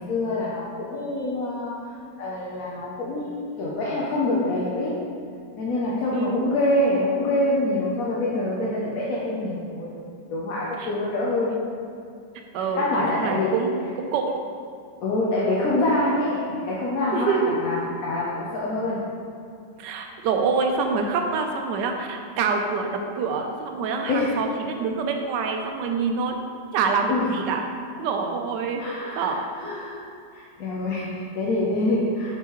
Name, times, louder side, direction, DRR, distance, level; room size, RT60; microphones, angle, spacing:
voice 1, 0.0-1.8 2.2-5.0 5.6-9.9 10.3-11.6 12.6-13.6 15.0-19.0 24.1-24.4 27.1-27.3 28.8-30.0 30.3-32.4, left 2 dB, 65° left, -5 dB, 1.1 m, -25 dB
voice 2, 12.5-14.4 17.1-17.6 19.8-26.4 26.7-27.6 28.0-28.9 29.2-29.4, right 5 dB, 85° right, 3 dB, 1.2 m, -26 dB
6.7 x 4.6 x 3.0 m, 2.3 s
omnidirectional pair, 1.9 m